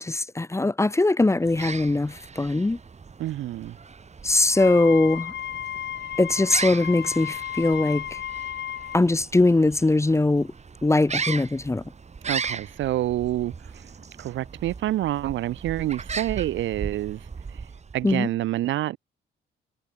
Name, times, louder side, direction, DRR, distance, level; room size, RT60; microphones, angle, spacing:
voice 1, 0.0-2.8 4.2-5.3 6.2-8.0 8.9-10.5 10.8-11.8 18.0-18.3, left 2 dB, 15° left, 1.2 m, -21 dB
sound 1, 1.4-18.1, right 5 dB, 35° right, 3.6 m, -37 dB
voice 2, 3.2-3.7 12.2-13.5 14.2-17.2 17.9-19.0, right 14 dB, 75° right, 0.8 m, -27 dB
Wind instrument woodwind instrument, 4.5-9.0, left 10 dB, 65° left, 2.7 m, -34 dB
cardioid pair, 90°, 20 cm